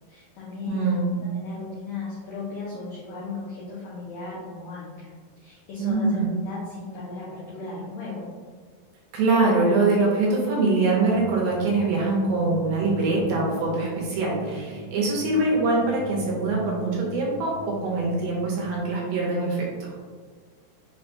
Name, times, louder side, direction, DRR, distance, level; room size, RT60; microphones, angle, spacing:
voice 1, 0.1-0.9 1.3-5.1 5.4-8.3, left 3 dB, 85° left, -8 dB, 1.6 m, -36 dB
voice 2, 0.7-1.2 5.8-6.3 9.1-19.9, right 3 dB, 80° right, -3 dB, 2.3 m, -23 dB
sound 1, 11.1-18.8, right 1 dB, 60° right, 1.2 m, -40 dB
5.8 x 2.2 x 2.7 m, 1.5 s
omnidirectional pair, 4.2 m